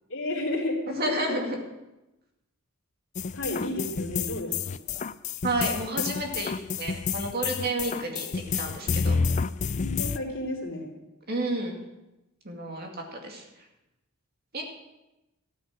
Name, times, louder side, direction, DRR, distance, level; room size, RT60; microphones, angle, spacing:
voice 1, 0.1-0.9 3.3-4.8 9.7-11.0, left 1 dB, 60° left, -1 dB, 3.5 m, -32 dB
voice 2, 0.9-1.6 5.4-6.5 6.8-8.3 8.5-9.2 11.3-11.8 12.4-13.4 14.5-14.6, right 1 dB, 45° right, 1 dB, 2.4 m, -30 dB
sound 1, 3.2-10.2, left 5 dB, 35° left, 0.4 m, -29 dB
14.5 x 9.6 x 6.2 m, 0.97 s
head